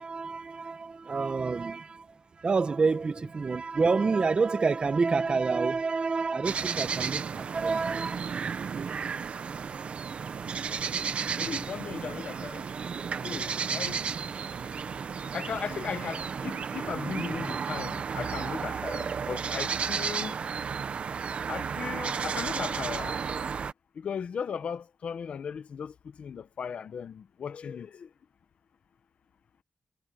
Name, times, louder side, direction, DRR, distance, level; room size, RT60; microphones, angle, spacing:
voice 1, 0.0-8.2, right 4 dB, 55° right, 1.2 m, -28 dB
sound 1, 6.4-23.7, right 6 dB, 75° right, 1.3 m, -33 dB
voice 2, 11.4-12.6 13.2-14.0 15.3-20.3 21.5-23.2 24.0-28.1, left 7 dB, 80° left, 1.2 m, -37 dB
cardioid pair, 60°, 2 cm